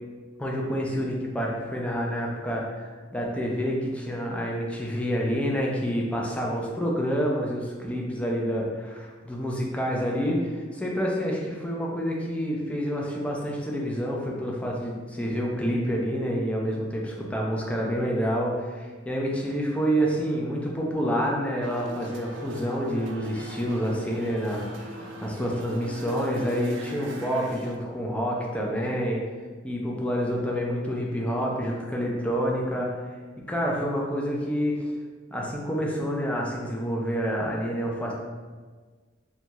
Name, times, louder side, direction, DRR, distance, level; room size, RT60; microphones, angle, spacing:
voice 1, 0.4-29.2 29.6-33.0 33.5-34.9 35.3-38.1, equal, 5° left, -2 dB, 0.4 m, -28 dB
sound 1, 21.6-27.8, right 1 dB, 75° right, 0.3 m, -41 dB
2.6 x 2.2 x 2.9 m, 1.4 s
head